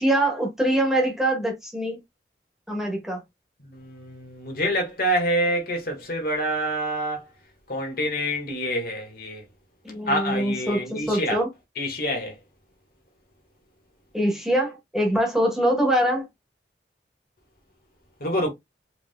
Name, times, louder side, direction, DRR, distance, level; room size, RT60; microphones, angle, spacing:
voice 1, 0.0-2.0 2.7-3.2 9.8-11.5 14.1-16.3, right 1 dB, 5° right, 1.4 m, -23 dB
voice 2, 3.7-7.3 7.7-9.4 10.1-11.4 11.8-12.4 18.2-18.5, equal, 55° left, 1.6 m, -27 dB
4.7 x 3.8 x 2.2 m
head